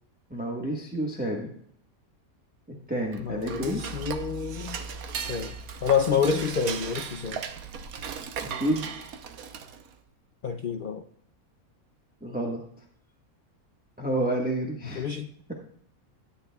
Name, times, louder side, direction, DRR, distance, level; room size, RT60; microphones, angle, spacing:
voice 1, 0.3-1.5 2.9-3.8 8.4-8.9 12.2-12.7 14.0-15.1 15.5-15.6, right 1 dB, 5° right, -1 dB, 1.1 m, -29 dB
Dishes pots and pans / Cutlery silverware, 3.0-9.9, right 6 dB, 75° right, 1.2 m, -37 dB
voice 2, 3.2-4.8 5.2-5.6 5.8-7.4 10.4-11.0 14.9-15.3, left 6 dB, 70° left, 7 dB, 0.5 m, -28 dB
13.0 x 9.4 x 2.3 m, 0.65 s
omnidirectional pair, 1.5 m